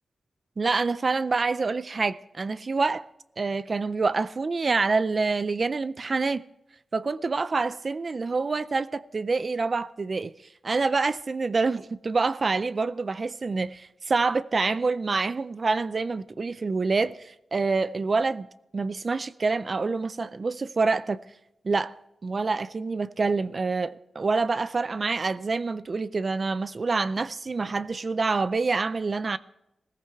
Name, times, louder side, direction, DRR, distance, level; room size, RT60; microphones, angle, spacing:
voice 1, 0.6-3.1 3.4-6.4 6.9-10.3 10.6-18.5 18.7-21.2 21.6-22.0 22.2-29.4, right 4 dB, 40° right, 0.4 m, -26 dB
17.5 x 15.0 x 3.5 m
wide cardioid pair, 135°, 0 cm